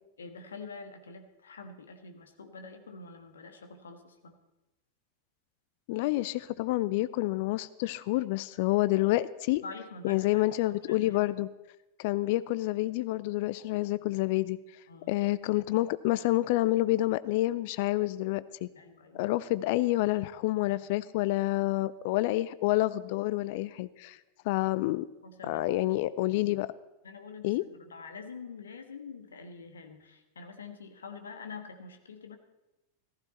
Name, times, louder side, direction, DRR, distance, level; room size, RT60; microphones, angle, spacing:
voice 1, 0.2-4.4 9.6-11.2 14.9-15.1 18.7-19.2 20.7-20.8 25.2-25.6 27.0-32.4, left 4 dB, 70° left, 6 dB, 1.6 m, -46 dB
voice 2, 5.9-9.6 10.0-11.5 12.0-14.6 15.1-18.7 19.1-24.2 24.4-25.1 25.5-26.7 27.4-27.6, left 17 dB, 50° left, 17 dB, 0.4 m, -28 dB
15.0 x 15.0 x 4.2 m, 1.0 s
figure-of-eight pair, 90°, 0 cm